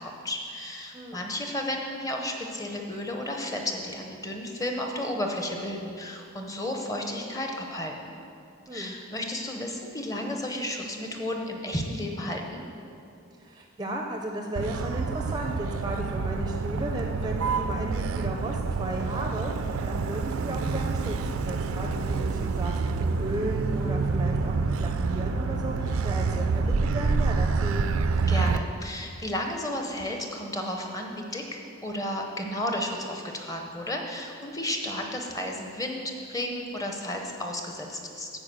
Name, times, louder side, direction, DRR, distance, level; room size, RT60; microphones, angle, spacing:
voice 1, 0.0-8.1 8.7-12.7 28.3-38.3, left 1 dB, 15° left, 2 dB, 0.7 m, -33 dB
voice 2, 13.4-26.6 26.9-27.9, right 1 dB, 20° right, 1 dB, 0.4 m, -35 dB
Motor vehicle (road), 14.6-28.6, right 4 dB, 80° right, 0.4 m, -27 dB
9.7 x 4.6 x 7.5 m, 2.6 s
head